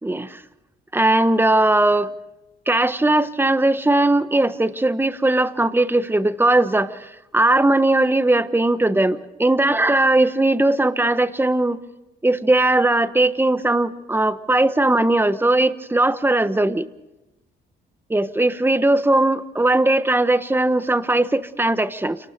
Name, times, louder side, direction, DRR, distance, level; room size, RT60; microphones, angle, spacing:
voice 1, 0.0-0.4 0.9-2.1 2.7-11.8 12.2-16.9 18.1-22.2, right 2 dB, 10° right, 12 dB, 1.2 m, -19 dB
28.5 x 19.0 x 5.3 m, 0.96 s
cardioid pair, 90°, 20 cm